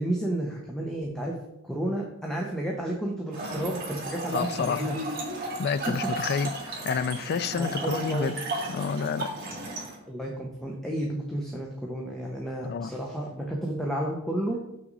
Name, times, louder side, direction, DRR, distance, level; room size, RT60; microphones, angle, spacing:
voice 1, 0.0-1.4 1.6-4.9 5.9-6.0 6.2-6.4 7.5-8.3 10.0-14.6, right 1 dB, ahead, 0.9 m, -31 dB
Trickle dribble / Fill (with liquid), 3.3-10.0, right 2 dB, 45° right, 2.1 m, -34 dB
voice 2, 4.3-4.9 5.6-6.5 6.8-8.4 8.7-9.3 12.6-12.9, left 6 dB, 50° left, 0.3 m, -29 dB
6.8 x 6.0 x 4.0 m
head